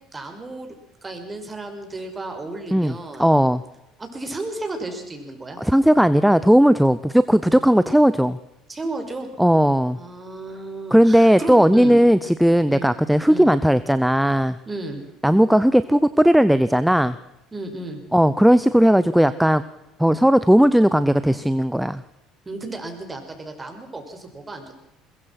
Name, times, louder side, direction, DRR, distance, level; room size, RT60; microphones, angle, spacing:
voice 1, 0.1-0.8 1.0-3.3 4.0-5.6 8.7-9.3 9.9-12.0 12.7-12.9 13.3-13.5 14.7-15.0 17.5-18.0 22.5-24.7, right 2 dB, 20° right, 5 dB, 5.7 m, -33 dB
voice 2, 3.2-3.6 5.6-8.4 9.4-10.0 10.9-14.6 15.2-17.2 18.1-19.6 20.0-22.0, equal, 5° right, 14 dB, 0.9 m, -16 dB
22.5 x 22.0 x 6.1 m, 0.89 s
hypercardioid pair, 65°, 0 cm